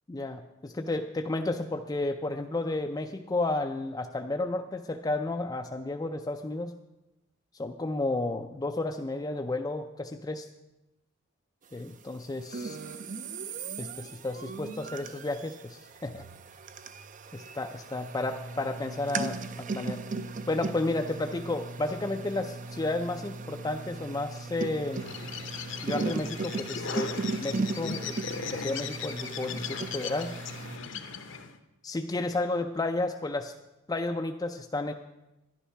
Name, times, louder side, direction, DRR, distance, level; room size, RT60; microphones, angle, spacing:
voice 1, 0.1-6.7 7.6-10.5 11.7-12.8 13.8-16.2 17.3-20.0 20.5-25.2 25.8-28.2 28.5-30.3 31.8-33.5 33.9-34.9, left 2 dB, 20° left, 4 dB, 0.4 m, -32 dB
sound 1, 12.5-30.8, right 3 dB, 40° right, 0.5 m, -37 dB
Bird, 24.9-31.6, left 6 dB, 60° left, 0.8 m, -38 dB
11.0 x 10.0 x 5.6 m, 0.97 s
head